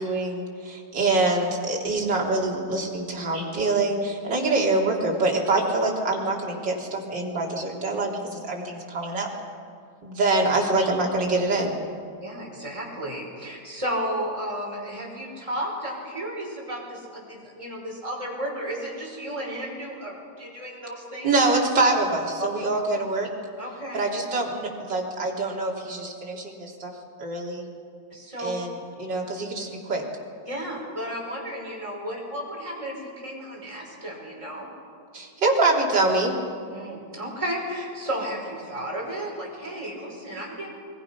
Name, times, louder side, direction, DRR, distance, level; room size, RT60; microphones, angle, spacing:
voice 1, 0.0-9.3 10.0-11.8 21.2-23.3 23.9-26.9 27.2-27.6 28.4-30.0 35.1-36.3, right 2 dB, 30° right, -2 dB, 3.5 m, -25 dB
voice 2, 12.2-21.3 23.6-24.0 28.1-28.5 30.4-34.7 36.7-40.7, equal, 10° right, -3 dB, 5.4 m, -33 dB
29.5 x 22.0 x 6.0 m, 2.3 s
omnidirectional pair, 4.0 m